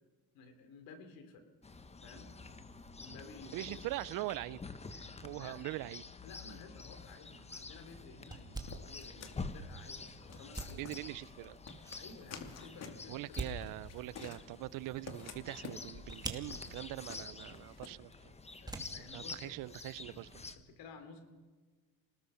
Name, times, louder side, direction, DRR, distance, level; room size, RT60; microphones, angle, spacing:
voice 1, 0.3-1.4 2.0-2.3 3.0-3.8 5.3-5.6 6.2-10.9 12.0-13.6 17.8-18.0 18.6-19.8 20.1-21.2, left 4 dB, 70° left, 8 dB, 3.7 m, -54 dB
Chirp tweet, 1.6-20.6, left 4 dB, 20° left, 1.3 m, -49 dB
voice 2, 3.5-4.6 4.9-6.0 10.7-11.6 13.1-18.3 19.1-20.3, right 18 dB, 65° right, 21 dB, 0.6 m, -42 dB
sound 1, 7.0-20.5, right 2 dB, 10° right, 2.6 m, -49 dB
sound 2, 8.7-17.9, left 5 dB, 45° left, 2.4 m, -51 dB
28.0 x 19.0 x 5.8 m, 1.4 s
supercardioid pair, 100°, 36 cm